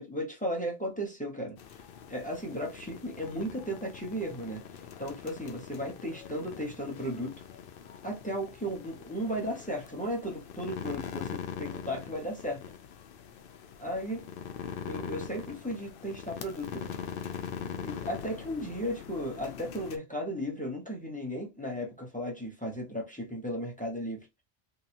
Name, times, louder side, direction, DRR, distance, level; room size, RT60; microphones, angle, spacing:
voice 1, 0.0-1.6 2.1-4.6 5.0-7.3 8.0-12.6 13.8-14.3 14.8-16.9 17.7-24.3, equal, 10° left, 0.9 m, -35 dB
sound 1, 1.6-20.0, left 7 dB, 65° left, 0.7 m, -42 dB
3.0 x 2.7 x 2.7 m
omnidirectional pair, 1.0 m